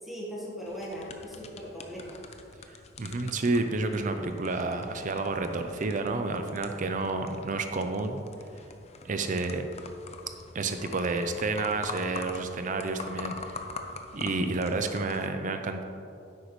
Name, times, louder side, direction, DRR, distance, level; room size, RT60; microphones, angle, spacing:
voice 1, 0.0-2.2, equal, ahead, -7 dB, 1.4 m, -39 dB
sound 1, 0.7-15.3, left 3 dB, 35° left, 0.6 m, -44 dB
voice 2, 3.0-8.2 9.0-9.7 10.5-13.6 14.1-15.8, right 3 dB, 45° right, 6 dB, 0.5 m, -30 dB
10.0 x 8.1 x 3.1 m, 2.5 s
head